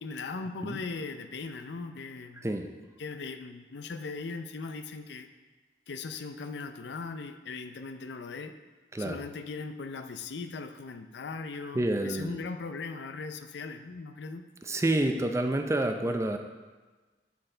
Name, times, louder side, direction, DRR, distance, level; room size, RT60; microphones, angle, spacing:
voice 1, 0.0-2.5 3.0-5.3 5.9-8.5 9.0-14.4, left 4 dB, 70° left, 8 dB, 0.5 m, -39 dB
voice 2, 11.7-12.4 14.6-16.4, right 1 dB, 15° right, 5 dB, 0.5 m, -28 dB
11.5 x 4.4 x 4.4 m, 1.3 s
head